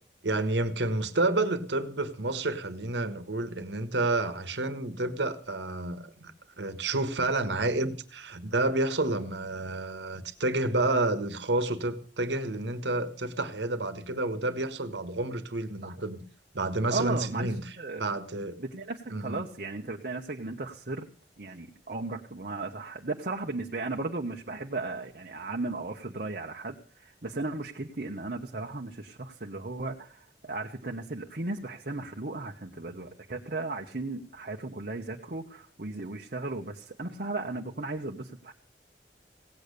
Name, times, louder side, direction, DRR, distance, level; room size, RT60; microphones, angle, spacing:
voice 1, 0.2-6.3 6.6-16.2 16.5-17.6 17.9-18.6 19.1-19.4, right 2 dB, 80° right, 1.5 m, -29 dB
voice 2, 16.9-17.5 17.8-18.1 18.6-21.1 21.4-38.5, right 3 dB, 55° right, 1.1 m, -36 dB
17.0 x 8.6 x 6.7 m
head